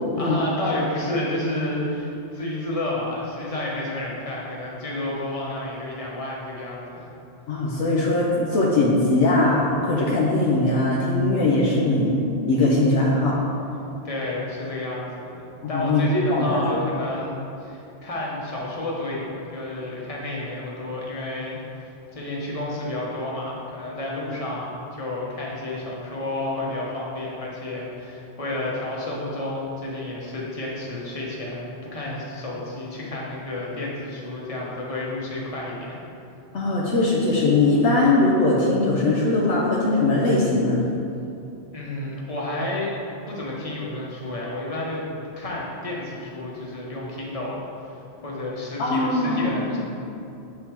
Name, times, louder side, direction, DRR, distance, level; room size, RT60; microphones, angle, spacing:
voice 1, 0.2-7.1 14.0-36.0 41.7-42.9 43.3-45.0 45.4-49.8, left 1 dB, 30° left, -4 dB, 1.1 m, -31 dB
voice 2, 7.5-12.1 12.5-13.4 15.6-16.8 36.5-40.8 48.8-49.5, left 2 dB, 85° left, -4 dB, 1.1 m, -20 dB
7.5 x 3.6 x 4.5 m, 2.7 s
omnidirectional pair, 1.2 m